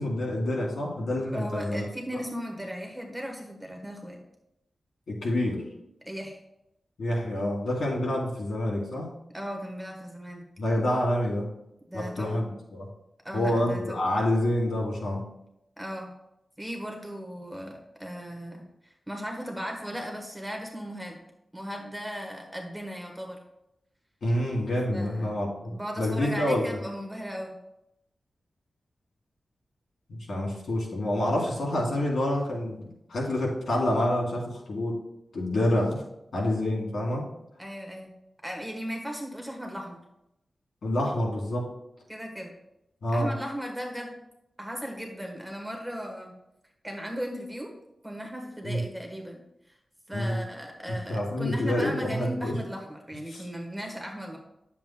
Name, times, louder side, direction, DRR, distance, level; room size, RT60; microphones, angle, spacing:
voice 1, 0.0-1.9 2.1-2.2 5.1-5.6 7.0-9.1 10.6-11.5 11.9-12.9 13.3-15.2 24.2-26.8 30.1-35.0 35.3-36.0 36.3-37.2 40.8-41.7 43.0-43.3 48.6-48.8 50.1-50.4 50.9-52.5 53.3-53.4, left 1 dB, 75° left, -3 dB, 2.6 m, -27 dB
voice 2, 1.2-4.2 6.0-6.4 9.3-10.5 11.9-12.3 13.2-14.0 15.8-16.1 16.6-21.2 21.5-23.4 24.9-25.3 25.7-27.5 37.6-38.1 38.4-40.0 42.1-42.5 43.1-44.2 44.6-46.3 46.8-47.7 48.0-49.4 50.1-54.4, equal, 5° right, 1 dB, 1.2 m, -37 dB
10.0 x 7.3 x 2.2 m, 0.83 s
wide cardioid pair, 155°, 0 cm